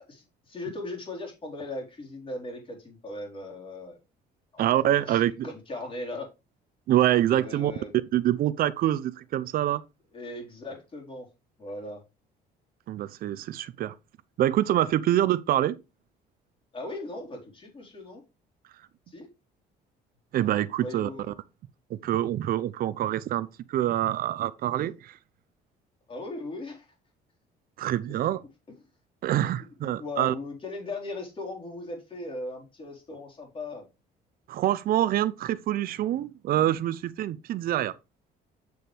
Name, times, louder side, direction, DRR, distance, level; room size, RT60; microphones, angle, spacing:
voice 1, 0.1-4.0 4.5-6.3 7.3-7.9 10.1-11.3 11.6-12.0 16.7-18.2 19.1-19.3 20.8-21.3 24.7-24.9 26.1-26.9 28.7-28.8 29.8-33.9, left 2 dB, 30° left, 4.1 m, -38 dB
voice 2, 4.6-5.5 6.9-7.7 8.1-9.8 12.9-13.9 14.4-15.7 20.3-21.1 21.9-25.1 27.8-28.4 29.2-30.3 34.5-37.9, right 12 dB, 60° right, 0.6 m, -25 dB
7.9 x 6.9 x 3.4 m
cardioid pair, 110°, 17 cm